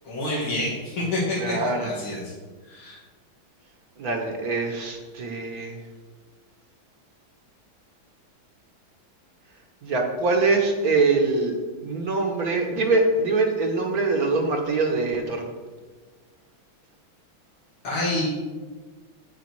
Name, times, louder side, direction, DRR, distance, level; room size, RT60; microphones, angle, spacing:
voice 1, 0.0-2.3 2.7-3.0 17.8-18.3, left 2 dB, 80° left, -6 dB, 3.1 m, -28 dB
voice 2, 1.4-1.9 4.0-5.7 9.8-11.6 11.8-15.4, right 3 dB, 50° right, 2 dB, 1.6 m, -23 dB
9.6 x 8.1 x 4.7 m, 1.3 s
omnidirectional pair, 2.2 m